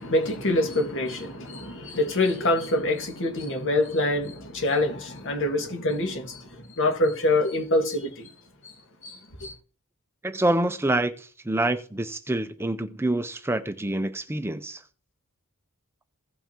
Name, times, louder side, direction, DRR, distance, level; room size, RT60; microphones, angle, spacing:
voice 1, 0.0-6.5 6.8-8.3 9.0-9.5, left 2 dB, 60° left, 1.9 m, -25 dB
voice 2, 10.2-14.8, right 1 dB, 10° right, 0.5 m, -26 dB
16.5 x 5.7 x 2.9 m
head